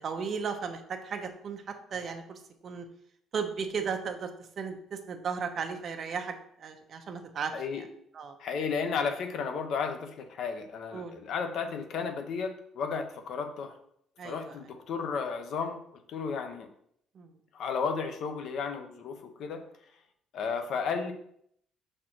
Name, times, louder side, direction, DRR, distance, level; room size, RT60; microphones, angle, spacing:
voice 1, 0.0-1.6 1.9-2.4 2.6-2.9 3.3-4.3 4.6-6.3 6.6-7.5 8.2-8.3 10.9-11.2 14.2-14.5 17.2-17.3, right 6 dB, 40° right, 6 dB, 0.8 m, -35 dB
voice 2, 7.5-7.8 8.4-13.7 14.2-16.7 17.5-19.6 20.3-21.1, left 5 dB, 55° left, 6 dB, 0.8 m, -33 dB
6.3 x 4.4 x 4.4 m, 0.70 s
cardioid pair, 150°, 0 cm